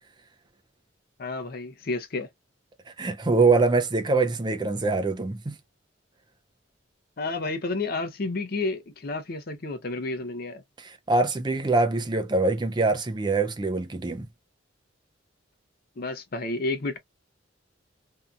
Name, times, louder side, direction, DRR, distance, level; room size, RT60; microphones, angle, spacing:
voice 1, 1.2-2.3 7.2-10.6 16.0-17.0, left 3 dB, 50° left, 0.6 m, -31 dB
voice 2, 3.0-5.6 10.8-14.3, right 3 dB, 20° right, 0.4 m, -24 dB
2.7 x 2.3 x 2.4 m
head